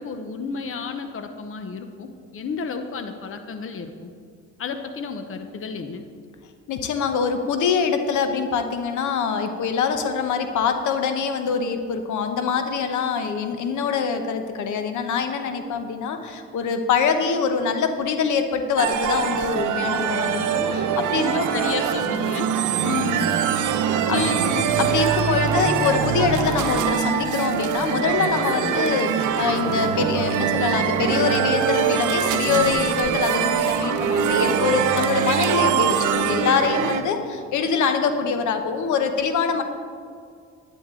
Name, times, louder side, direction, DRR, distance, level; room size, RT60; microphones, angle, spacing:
voice 1, 0.0-4.1 4.6-6.0 21.2-22.5 24.1-24.6, left 5 dB, 45° left, 7 dB, 0.9 m, -31 dB
voice 2, 6.7-21.6 22.8-23.3 24.1-24.2 24.8-39.6, left 6 dB, 75° left, 7 dB, 1.0 m, -24 dB
sound 1, 18.8-37.0, right 8 dB, 80° right, 0.8 m, -23 dB
sound 2, 25.5-31.7 32.3-34.1, right 1 dB, 5° left, 2.9 m, -37 dB
11.0 x 10.5 x 3.8 m, 2.2 s
cardioid pair, 90°, 30 cm